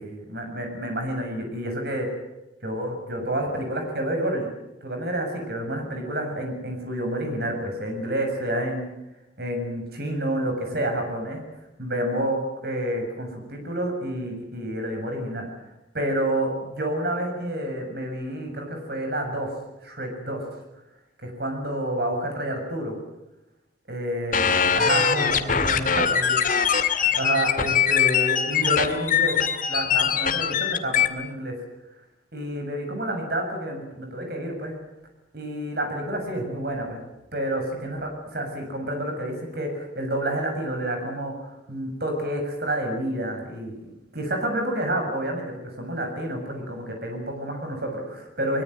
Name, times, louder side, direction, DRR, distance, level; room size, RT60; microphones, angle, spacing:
voice 1, 0.0-2.1 2.6-4.5 4.8-8.9 9.4-11.4 11.8-15.5 15.9-19.5 19.8-20.4 21.2-22.9 23.9-29.4 29.7-31.5 32.3-34.7 35.3-37.0 37.3-41.3 41.7-48.6, right 1 dB, 55° right, 3 dB, 7.2 m, -29 dB
sound 1, 24.3-31.1, left 7 dB, 45° left, 2.1 m, -22 dB
23.5 x 22.5 x 8.0 m, 0.94 s
head